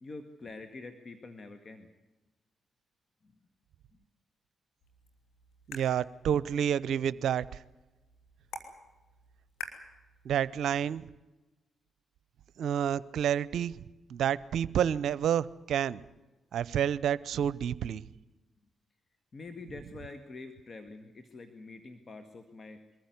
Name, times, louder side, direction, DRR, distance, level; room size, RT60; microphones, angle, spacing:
voice 1, 0.0-1.9 19.3-22.8, left 3 dB, 50° left, 9 dB, 1.9 m, -46 dB
sound 1, 4.8-10.8, left 2 dB, 85° left, 3.2 m, -49 dB
voice 2, 5.7-7.4 10.2-11.1 12.6-13.7 14.1-16.0 16.5-18.0, right 9 dB, 75° right, 19 dB, 0.6 m, -29 dB
23.0 x 14.5 x 9.6 m, 1.1 s
supercardioid pair, 50°, 0 cm